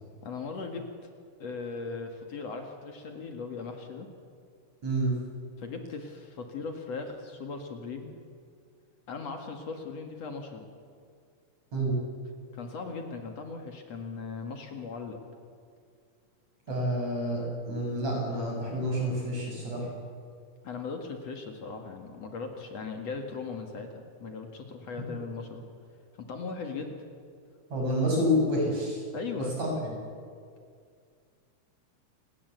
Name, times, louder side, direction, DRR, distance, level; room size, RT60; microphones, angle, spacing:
voice 1, 0.2-0.9 1.4-4.1 5.6-8.1 9.1-10.7 12.5-15.2 16.7-17.0 20.6-25.7 26.2-27.0 29.1-29.6, left 4 dB, 55° left, 4 dB, 3.0 m, -38 dB
voice 2, 4.8-5.2 11.7-12.0 16.7-19.9 27.7-29.0 29.4-30.0, equal, 60° right, -1 dB, 8.2 m, -28 dB
28.5 x 19.5 x 8.1 m, 2.2 s
omnidirectional pair, 3.6 m